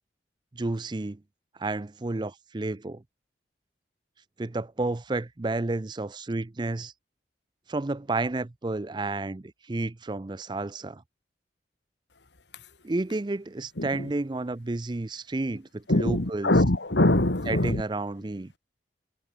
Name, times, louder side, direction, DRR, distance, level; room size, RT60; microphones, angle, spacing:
voice 1, 0.5-1.2 1.6-3.0 4.4-6.9 7.7-11.0 12.8-16.5 17.5-18.5, right 2 dB, 25° right, 0.5 m, -31 dB
voice 2, 13.8-14.1 15.9-17.8, left 1 dB, 80° left, 2.1 m, -23 dB
head